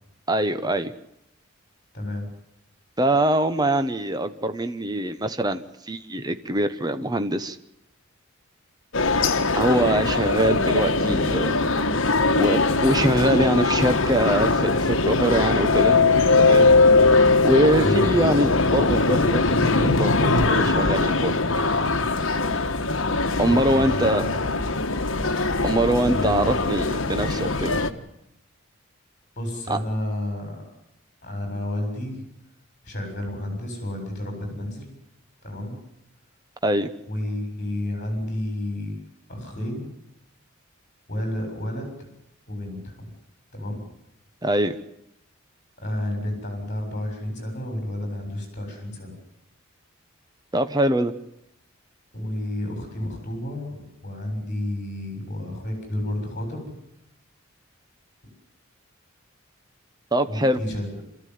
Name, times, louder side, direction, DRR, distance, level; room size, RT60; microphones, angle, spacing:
voice 1, 0.3-0.9 3.0-7.6 9.5-11.6 12.4-16.0 16.4-16.7 17.4-21.4 23.4-24.2 25.6-27.8 29.7-29.8 36.6-36.9 44.4-44.7 50.5-51.1 60.1-60.6, right 1 dB, 20° right, 10 dB, 1.0 m, -23 dB
voice 2, 1.9-2.3 17.8-18.0 23.5-24.4 26.1-26.6 29.4-30.6 31.2-32.2 32.8-35.0 35.4-35.8 37.1-39.0 39.3-39.9 41.1-42.0 42.5-43.1 43.5-43.9 45.8-49.2 52.1-56.7 58.2-58.3 60.3-61.0, left 1 dB, 35° left, 4 dB, 6.9 m, -31 dB
sound 1, 8.9-27.9, left 3 dB, 60° left, 1.5 m, -21 dB
27.0 x 14.5 x 9.4 m, 0.84 s
head